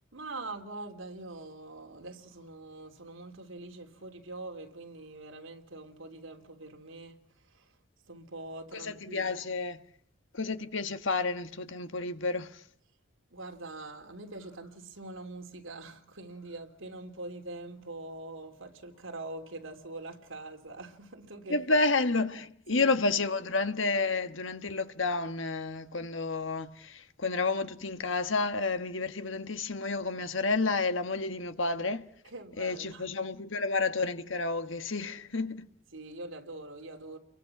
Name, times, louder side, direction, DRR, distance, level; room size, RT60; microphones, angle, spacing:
voice 1, 0.1-7.7 8.1-9.4 13.3-21.9 22.7-22.9 32.2-33.1 35.9-37.2, right 2 dB, 80° right, 3.4 m, -44 dB
voice 2, 8.7-9.8 10.3-12.6 21.5-32.0 32.6-35.7, left 3 dB, 70° left, 1.5 m, -30 dB
29.5 x 23.0 x 6.0 m
head